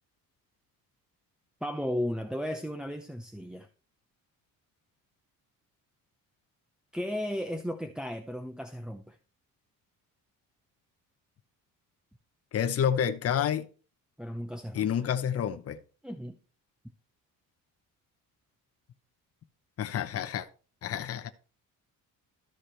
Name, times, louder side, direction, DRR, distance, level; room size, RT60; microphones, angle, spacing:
voice 1, 1.6-3.7 6.9-9.2 14.2-14.9 16.0-16.4, equal, ahead, 0.7 m, -35 dB
voice 2, 12.5-13.7 14.7-15.8 19.8-20.5 20.8-21.3, left 9 dB, 45° left, 0.8 m, -29 dB
13.5 x 4.9 x 4.4 m
cardioid pair, 120°, 34 cm